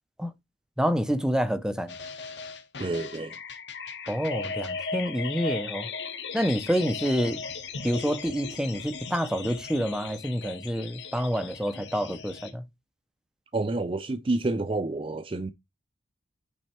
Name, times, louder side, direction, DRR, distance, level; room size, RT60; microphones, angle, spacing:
voice 1, 0.8-1.9 4.1-5.9 6.3-7.4 7.8-12.6, equal, 5° right, 0.8 m, -28 dB
sound 1, 1.9-12.5, left 5 dB, 70° left, 1.4 m, -37 dB
voice 2, 2.8-3.4 13.5-15.5, right 2 dB, 30° right, 0.4 m, -29 dB
9.0 x 4.3 x 4.4 m
head